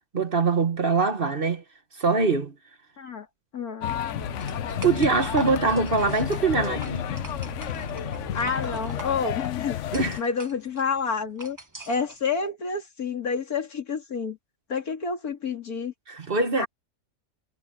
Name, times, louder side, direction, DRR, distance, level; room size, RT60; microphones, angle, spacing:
voice 1, 0.1-1.6 2.0-2.5 4.8-7.0 9.9-10.2 16.1-16.7, right 4 dB, 40° right, 1.4 m, -23 dB
voice 2, 3.0-3.3 3.5-4.0 8.3-9.8 10.2-11.6 11.9-14.4 14.7-15.9 16.6-16.7, left 5 dB, 80° left, 3.0 m, -29 dB
sound 1, 3.8-10.2, left 11 dB, 65° left, 0.9 m, -31 dB
sound 2, 4.1-9.2, right 2 dB, 80° right, 7.1 m, -40 dB
sound 3, 4.4-12.2, right 2 dB, 15° right, 1.1 m, -43 dB
omnidirectional pair, 1.5 m